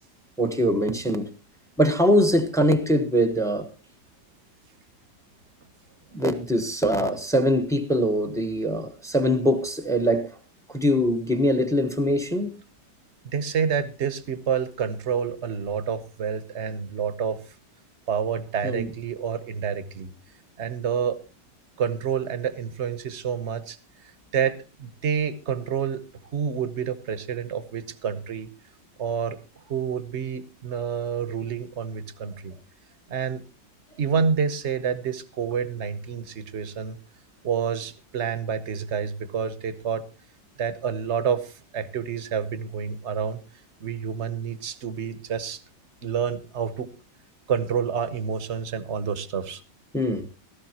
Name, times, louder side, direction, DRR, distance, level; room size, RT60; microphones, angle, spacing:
voice 1, 0.4-1.3 1.8-3.7 6.1-10.3 10.7-12.5 18.6-18.9 49.9-50.3, equal, ahead, 0.9 m, -22 dB
voice 2, 13.2-17.4 18.1-20.1 20.6-21.2 21.8-23.8 24.3-26.0 26.3-28.5 29.0-29.4 29.7-32.6 33.1-33.4 34.0-36.9 37.4-40.0 40.6-43.4 43.8-45.6 46.0-46.9 47.5-49.6, right 7 dB, 45° right, 1.2 m, -28 dB
16.5 x 14.0 x 3.0 m
omnidirectional pair, 1.9 m